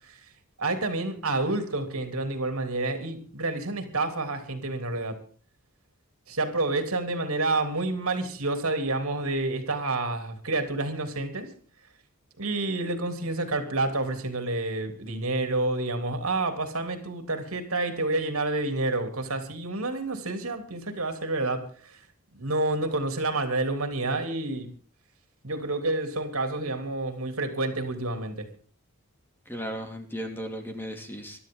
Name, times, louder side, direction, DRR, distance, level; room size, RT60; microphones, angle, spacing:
voice 1, 0.6-5.2 6.3-11.5 12.4-21.6 22.3-24.7 25.4-28.5, right 2 dB, 80° right, 6 dB, 3.2 m, -29 dB
voice 2, 29.5-31.4, equal, 10° left, 4 dB, 2.7 m, -36 dB
23.0 x 12.5 x 3.9 m, 0.42 s
head